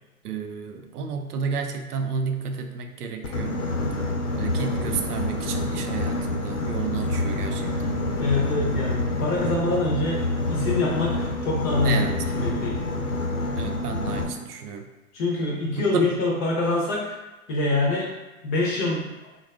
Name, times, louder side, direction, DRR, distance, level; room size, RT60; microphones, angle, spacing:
voice 1, 0.2-3.6 4.4-7.9 11.8-12.2 13.6-14.9 15.8-16.0, right 6 dB, 85° right, 5 dB, 0.5 m, -31 dB
Boat Water vehicle, 3.2-14.2, left 2 dB, 75° left, 0.8 m, -27 dB
voice 2, 8.2-10.2 10.5-12.8 15.1-17.2 17.5-18.1 18.4-19.1, left 2 dB, 25° left, -3 dB, 0.6 m, -25 dB
3.7 x 2.3 x 2.4 m, 1.1 s
hypercardioid pair, 115°, 44 cm